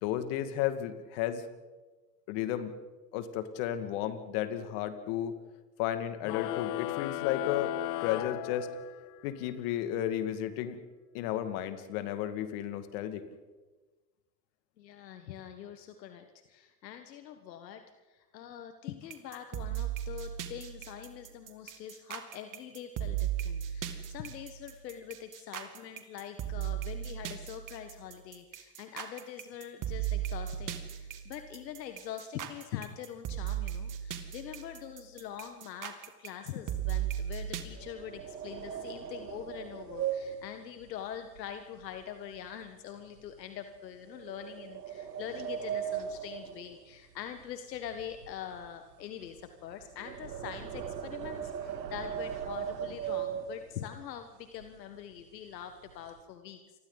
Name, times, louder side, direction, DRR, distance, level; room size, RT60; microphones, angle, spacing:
voice 1, 0.0-1.4 2.3-2.7 3.1-5.4 5.8-7.7 8.0-8.7 9.2-10.8 11.1-13.3, left 11 dB, 60° left, 9 dB, 2.2 m, -33 dB
sound 1, 6.2-9.2, left 18 dB, 40° left, 0.7 m, -35 dB
voice 2, 14.8-56.8, left 9 dB, 80° left, 8 dB, 1.5 m, -44 dB
sound 2, 19.1-37.6, right 11 dB, 40° right, 2.4 m, -36 dB
sound 3, 36.7-42.0 42.3-42.7 43.2-43.3 44.1-47.4 47.7-54.0 54.6-54.7 55.0-55.2 55.5-56.2, right 9 dB, 90° right, 1.9 m, -39 dB
29.5 x 24.5 x 4.0 m, 1.3 s
hypercardioid pair, 90°, 50 cm